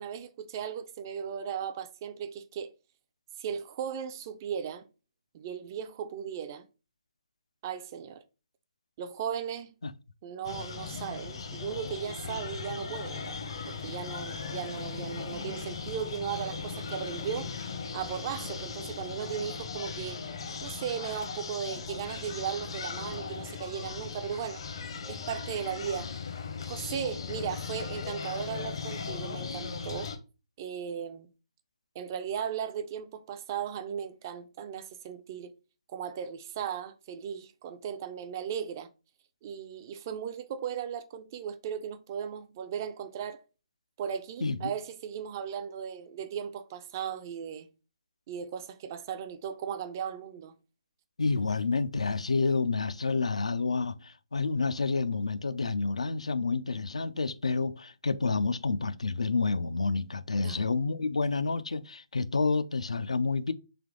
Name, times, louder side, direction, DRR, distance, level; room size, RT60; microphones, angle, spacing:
voice 1, 0.0-2.7 3.4-4.9 5.3-6.7 7.6-8.2 9.0-9.7 10.2-13.4 13.7-17.6 17.9-20.2 20.6-24.6 25.1-26.1 26.6-30.1 30.6-31.3 31.9-35.5 35.9-38.9 39.4-43.4 44.0-47.7 48.3-50.5 60.4-60.6, right 8 dB, 30° right, 0.4 m, -37 dB
sound 1, 10.4-30.2, left 5 dB, 55° left, 0.8 m, -38 dB
voice 2, 44.4-44.7 51.2-63.5, left 4 dB, 80° left, 0.4 m, -29 dB
3.4 x 2.9 x 3.7 m
figure-of-eight pair, 150°, 3 cm